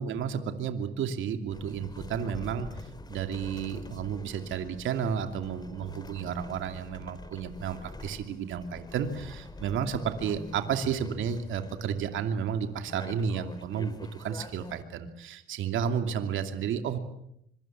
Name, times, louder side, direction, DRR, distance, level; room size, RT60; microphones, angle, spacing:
voice 1, 0.0-2.7 3.1-17.0, right 7 dB, 80° right, 7 dB, 2.7 m, -32 dB
sound 1, 1.5-14.8, left 2 dB, 20° left, 2.4 m, -45 dB
25.5 x 23.5 x 7.5 m, 0.76 s
cardioid pair, 90°, 20 cm